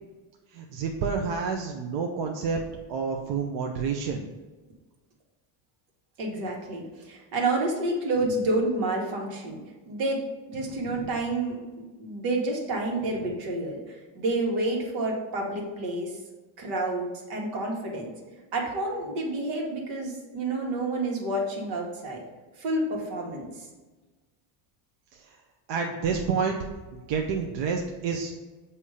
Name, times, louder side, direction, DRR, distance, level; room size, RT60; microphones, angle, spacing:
voice 1, 0.5-2.6 2.9-4.2 10.6-11.0 25.1-25.3 25.7-26.6 26.9-28.3, right 5 dB, 65° right, 2 dB, 0.7 m, -29 dB
voice 2, 6.2-9.6 9.9-11.6 12.0-16.1 16.6-18.1 18.5-22.2 22.6-23.6, right 2 dB, 85° right, -1 dB, 1.6 m, -29 dB
6.9 x 2.8 x 4.9 m, 1.2 s
cardioid pair, 145°, 47 cm